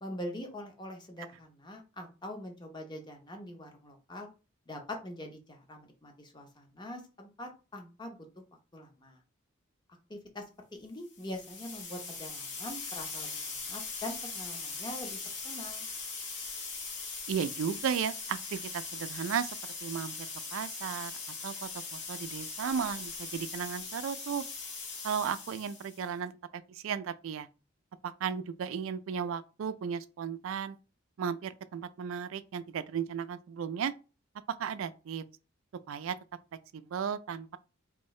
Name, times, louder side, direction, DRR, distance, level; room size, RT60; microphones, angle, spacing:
voice 1, 0.0-4.3 4.7-8.4 8.7-9.2 10.1-10.4 10.8-15.2 15.4-15.8, left 1 dB, 20° left, 0.7 m, -43 dB
sound 1, 11.1-26.1, left 4 dB, 60° left, 1.0 m, -40 dB
voice 2, 17.3-19.5 19.8-20.1 20.5-21.1 21.4-24.4 25.0-27.5 28.0-30.8 31.2-33.9 34.6-35.2 35.9-36.1 36.7-37.6, right 7 dB, 75° right, 0.3 m, -35 dB
3.7 x 2.7 x 3.1 m
head